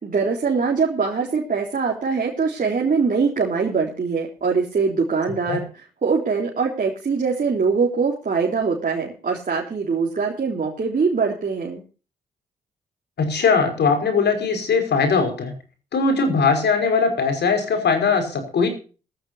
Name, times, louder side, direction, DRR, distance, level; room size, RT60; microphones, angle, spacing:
voice 1, 0.0-11.8, right 5 dB, 45° right, -1 dB, 3.9 m, -23 dB
voice 2, 13.2-15.5 15.9-18.7, left 5 dB, 60° left, 7 dB, 5.4 m, -20 dB
20.0 x 14.5 x 2.8 m, 0.35 s
hypercardioid pair, 45°, 19 cm